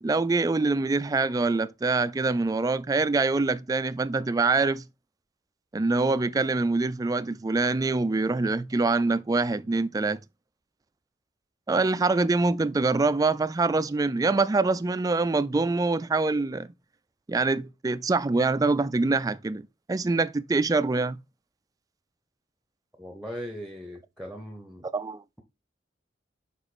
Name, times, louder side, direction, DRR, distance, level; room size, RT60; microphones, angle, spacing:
voice 1, 0.0-4.8 5.7-10.2 11.7-16.7 17.3-19.6 19.9-21.2 24.9-25.2, right 3 dB, 20° right, 0.3 m, -25 dB
voice 2, 23.0-24.9, equal, ahead, 0.8 m, -39 dB
5.2 x 5.0 x 4.1 m
head